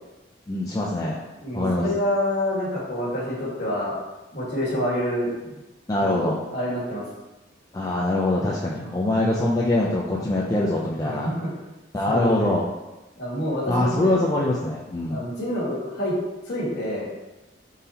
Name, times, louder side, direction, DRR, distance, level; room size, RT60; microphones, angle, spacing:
voice 1, 0.5-1.2 1.5-1.9 5.9-6.4 7.7-11.3 11.9-12.7 13.7-15.2, left 1 dB, 20° left, -5 dB, 0.3 m, -23 dB
voice 2, 1.4-3.9 4.3-5.3 6.0-7.0 8.8-8.9 11.0-11.5 12.1-12.5 13.2-14.2 15.1-16.1 16.5-17.1, left 1 dB, 55° left, -7 dB, 1.4 m, -27 dB
4.0 x 3.9 x 2.7 m, 1.1 s
head